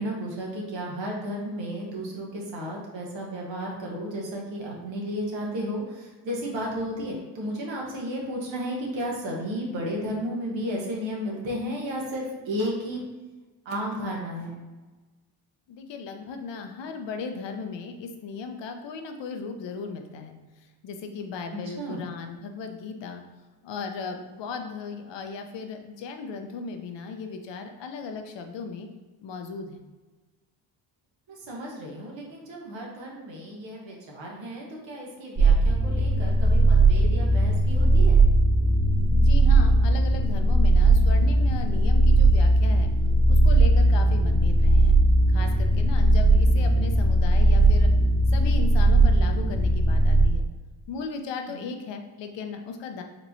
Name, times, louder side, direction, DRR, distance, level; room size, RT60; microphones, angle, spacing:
voice 1, 0.0-13.0 13.6-14.6 21.5-22.0 31.3-38.2 51.5-51.7, equal, 80° right, -1 dB, 1.2 m, -33 dB
voice 2, 15.7-20.4 20.8-23.2 23.6-28.9 29.2-29.8 39.1-42.9 43.3-44.9 45.3-47.9 48.3-50.4 50.9-53.0, left 5 dB, 70° left, 5 dB, 0.7 m, -36 dB
sound 1, 35.4-50.3, right 2 dB, 35° right, 1.0 m, -19 dB
4.5 x 3.0 x 2.6 m, 1.2 s
cardioid pair, 80°, 45 cm